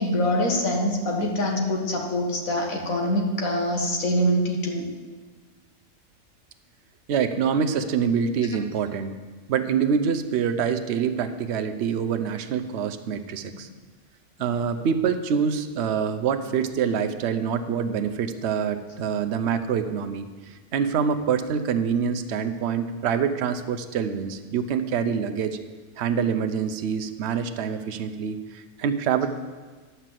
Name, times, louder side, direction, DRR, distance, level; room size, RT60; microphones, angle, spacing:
voice 1, 0.0-4.9, equal, 75° left, 0 dB, 2.0 m, -24 dB
voice 2, 7.1-9.1 9.5-13.7 14.4-25.6 26.0-29.3, right 7 dB, 60° right, 9 dB, 0.9 m, -26 dB
11.5 x 5.6 x 7.6 m, 1.4 s
omnidirectional pair, 1.4 m